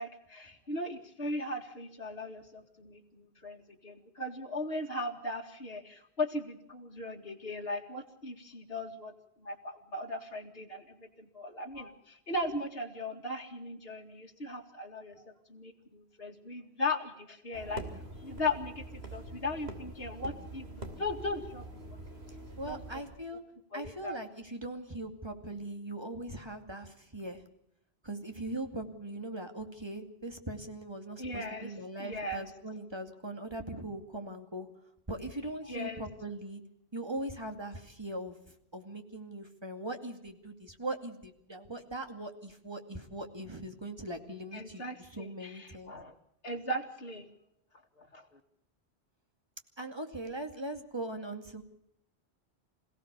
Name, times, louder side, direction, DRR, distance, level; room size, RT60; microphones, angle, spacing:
voice 1, 0.0-17.8 18.2-18.8 19.1-22.0 22.6-22.8 23.7-24.2 31.2-31.7 32.0-32.5 35.7-36.0 44.5-46.1 46.4-47.3 48.0-48.3, left 2 dB, 60° left, 0 dB, 2.5 m, -38 dB
sound 1, 17.5-23.2, right 2 dB, 70° right, 3.2 m, -45 dB
voice 2, 22.6-23.4 23.7-27.4 28.0-34.7 35.1-36.6 36.9-45.9 49.8-51.6, right 1 dB, 25° right, 5 dB, 2.4 m, -40 dB
27.0 x 17.0 x 6.9 m, 0.77 s
omnidirectional pair, 1.1 m